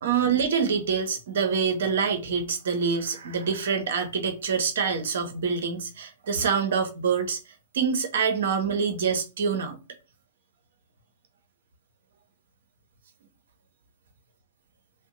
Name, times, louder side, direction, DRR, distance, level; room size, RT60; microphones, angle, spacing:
voice 1, 0.0-7.4 7.7-9.8, right 6 dB, 65° right, 0.8 m, -26 dB
2.6 x 2.1 x 3.8 m
figure-of-eight pair, 110°, 0 cm